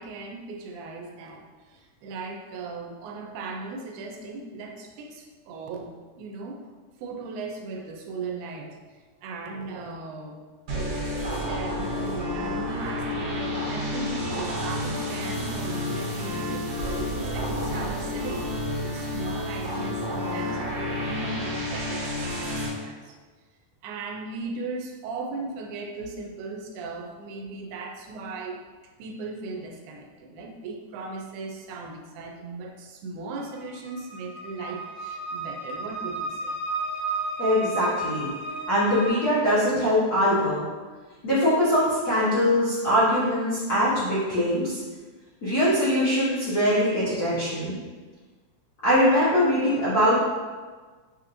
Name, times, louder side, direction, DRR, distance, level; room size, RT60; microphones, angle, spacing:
voice 1, 0.0-5.9 6.2-6.6 7.0-8.8 9.2-10.4 11.4-18.5 18.8-23.2 23.8-28.6 29.0-36.6, right 3 dB, 85° right, 1 dB, 2.1 m, -37 dB
sound 1, 10.7-22.7, left 1 dB, 60° right, 1.8 m, -30 dB
sound 2, 33.4-39.1, right 2 dB, 45° right, 0.6 m, -33 dB
voice 2, 37.4-38.3 38.7-40.6 41.2-44.8 45.4-47.8 48.8-50.1, equal, 80° left, -11 dB, 0.8 m, -22 dB
6.7 x 2.9 x 2.6 m, 1.4 s
omnidirectional pair, 3.5 m